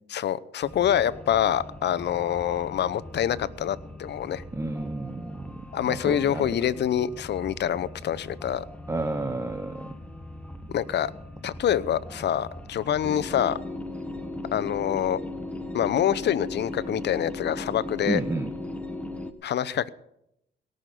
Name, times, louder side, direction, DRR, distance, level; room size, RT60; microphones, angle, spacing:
voice 1, 0.1-4.4 5.7-8.6 10.7-11.1 11.4-13.6 14.5-15.2 15.7-18.2 19.4-19.9, left 10 dB, 60° left, 17 dB, 0.8 m, -26 dB
sound 1, 0.6-19.3, left 1 dB, 5° left, 1.2 m, -39 dB
voice 2, 4.5-6.5 8.9-9.9 18.1-18.5, right 2 dB, 15° right, 8 dB, 0.9 m, -31 dB
18.0 x 6.5 x 9.3 m, 0.78 s
cardioid pair, 90°, 20 cm